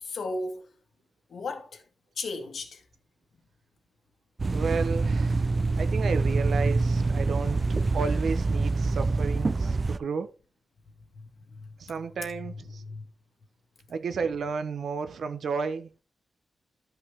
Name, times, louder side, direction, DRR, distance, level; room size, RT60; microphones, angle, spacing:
voice 1, 0.0-0.6 1.3-1.8 2.2-2.8 11.1-11.7 12.8-13.0, left 3 dB, 70° left, 1.8 m, -35 dB
sound 1, 4.4-10.0, right 3 dB, 35° right, 0.4 m, -25 dB
voice 2, 4.5-5.5 5.8-7.6 7.9-10.3 11.8-12.8 13.9-15.9, right 5 dB, 75° right, 0.8 m, -32 dB
12.5 x 5.6 x 3.4 m
wide cardioid pair, 130°, 0 cm